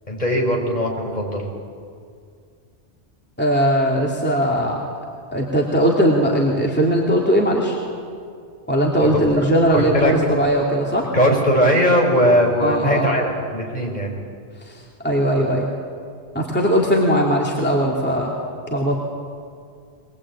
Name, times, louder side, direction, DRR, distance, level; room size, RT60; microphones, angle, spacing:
voice 1, 0.1-1.4 9.0-9.2 9.7-10.3 11.1-14.1, equal, 40° left, 0 dB, 5.0 m, -19 dB
voice 2, 3.4-4.8 5.3-7.8 8.7-11.1 12.6-13.1 14.7-15.7 16.3-18.3 18.7-19.0, equal, 10° left, -2 dB, 2.7 m, -19 dB
22.5 x 21.0 x 8.7 m, 2.3 s
omnidirectional pair, 1.2 m